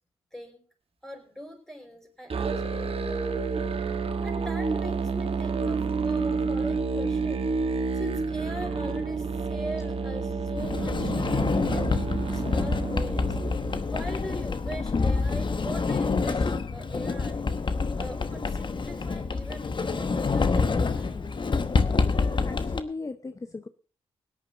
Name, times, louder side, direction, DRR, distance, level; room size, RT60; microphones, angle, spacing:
voice 1, 0.3-0.6 1.0-3.2 4.2-7.6 7.9-11.9 12.3-13.4 13.8-17.5 18.0-21.2, equal, 5° left, 2 dB, 5.6 m, -41 dB
Musical instrument, 2.3-13.9, right 4 dB, 60° right, 1.3 m, -29 dB
Sliding door, 10.6-22.8, left 4 dB, 45° left, 1.1 m, -27 dB
voice 2, 22.4-23.7, left 3 dB, 30° left, 10 dB, 0.8 m, -37 dB
17.5 x 10.0 x 3.9 m, 0.38 s
cardioid pair, 60°, 11 cm